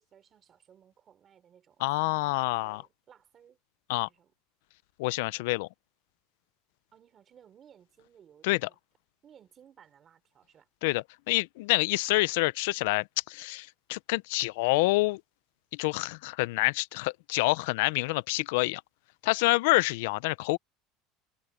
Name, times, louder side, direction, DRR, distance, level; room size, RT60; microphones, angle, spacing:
voice 1, 0.0-3.6 4.0-4.3 6.9-8.8 9.2-10.7, right 9 dB, 25° right, 3.7 m, -59 dB
voice 2, 1.8-2.8 3.9-4.1 5.0-5.7 8.4-8.7 10.8-15.2 15.7-18.8 19.2-20.6, left 22 dB, 70° left, 0.4 m, -27 dB
cardioid pair, 170°, 0 cm